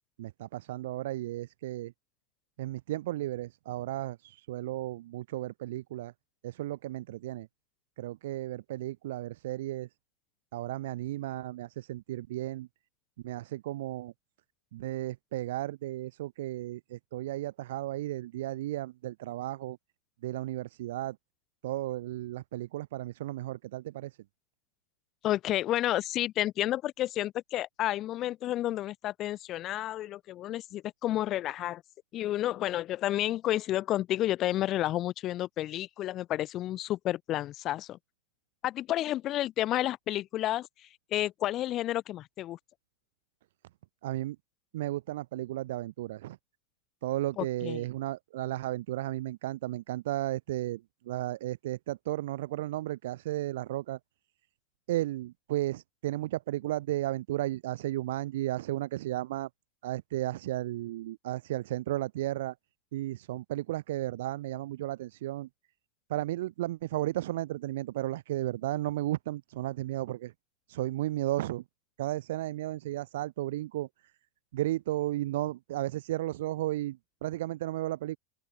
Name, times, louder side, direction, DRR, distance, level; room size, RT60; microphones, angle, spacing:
voice 1, 0.2-1.9 2.6-6.1 6.4-7.5 8.0-9.9 10.5-12.7 13.2-14.1 14.7-19.8 20.2-21.2 21.6-24.2 44.0-44.4 44.7-46.4 47.0-54.0 54.9-59.5 59.8-62.5 62.9-65.5 66.1-70.3 70.7-71.6 72.0-73.9 74.5-78.2, right 15 dB, 55° right, 0.4 m, -34 dB
voice 2, 25.2-31.8 32.1-38.0 38.6-42.6 47.4-47.8, left 14 dB, 35° left, 0.7 m, -31 dB
open air
figure-of-eight pair, 90°, 0 cm